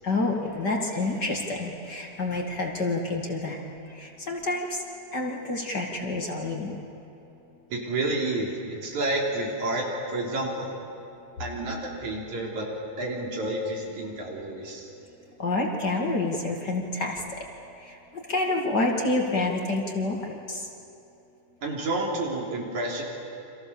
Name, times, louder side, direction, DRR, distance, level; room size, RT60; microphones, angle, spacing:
voice 1, 0.0-3.6 3.9-4.8 5.1-6.7 15.4-17.2 17.8-18.0 18.3-20.6, left 2 dB, 35° left, 0 dB, 2.5 m, -28 dB
voice 2, 7.7-10.7 11.4-12.7 13.0-14.9 21.6-23.0, right 2 dB, 75° right, -1 dB, 4.8 m, -30 dB
29.5 x 26.0 x 7.1 m, 2.8 s
omnidirectional pair, 3.4 m